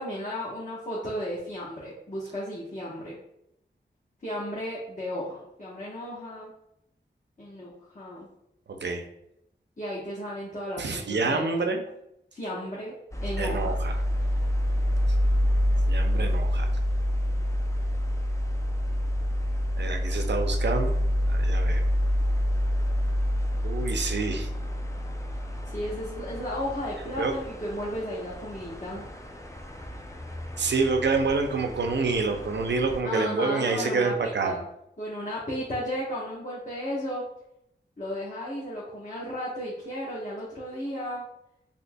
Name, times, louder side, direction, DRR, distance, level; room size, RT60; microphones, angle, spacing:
voice 1, 0.0-3.2 4.2-6.5 7.4-8.3 9.8-11.7 12.3-12.9 13.2-13.7 25.7-29.0 33.0-34.6 35.0-37.3 38.0-41.2, equal, 40° left, -8 dB, 1.0 m, -34 dB
voice 2, 8.7-9.0 10.8-11.8 13.4-13.9 15.9-16.7 19.8-21.0 21.3-21.8 23.6-24.5 27.2-27.3 30.6-34.6, right 4 dB, 65° right, 5 dB, 0.5 m, -27 dB
sound 1, 13.1-33.0, equal, 15° left, 0.5 m, -28 dB
4.1 x 2.7 x 2.2 m, 0.80 s
cardioid pair, 50°, 19 cm